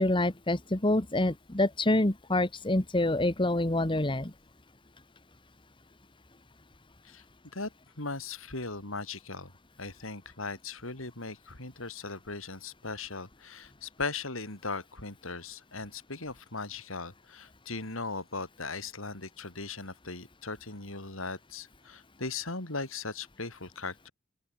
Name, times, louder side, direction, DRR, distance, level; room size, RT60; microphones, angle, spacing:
voice 1, 0.0-4.3, left 1 dB, 25° left, 1.5 m, -26 dB
voice 2, 8.0-9.5 9.8-24.1, left 3 dB, 85° left, 5.6 m, -38 dB
open air
head